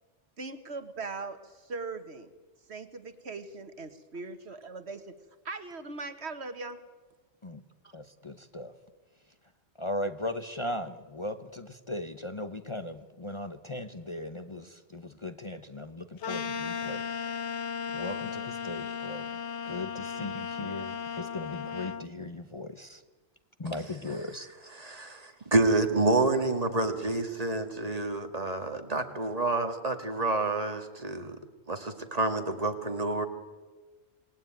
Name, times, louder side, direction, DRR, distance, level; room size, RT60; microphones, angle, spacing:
voice 1, 0.4-2.3 2.7-5.1 5.5-6.8, right 3 dB, 70° right, 10 dB, 1.8 m, -40 dB
voice 2, 7.9-8.7 9.8-17.0 17.9-19.2 19.6-23.0 23.6-24.5 25.1-25.2, left 1 dB, 30° left, 8 dB, 1.0 m, -38 dB
sound 1, 16.2-22.1, left 7 dB, 85° left, 1.3 m, -36 dB
voice 3, 24.8-31.4 31.7-33.3, right 2 dB, 35° right, 6 dB, 2.2 m, -28 dB
27.5 x 19.5 x 9.1 m, 1.3 s
omnidirectional pair, 1.1 m